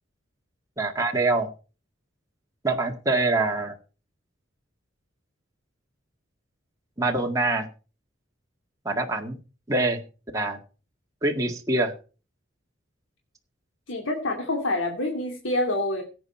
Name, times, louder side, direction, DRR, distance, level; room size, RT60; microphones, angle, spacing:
voice 1, 0.8-1.5 2.6-3.7 7.0-7.7 8.9-9.4 9.7-10.0 10.3-10.6 11.2-11.9, right 2 dB, 15° right, 1 dB, 1.8 m, -24 dB
voice 2, 13.9-16.0, left 2 dB, 85° left, 2 dB, 2.5 m, -27 dB
17.0 x 8.7 x 4.5 m, 0.35 s
head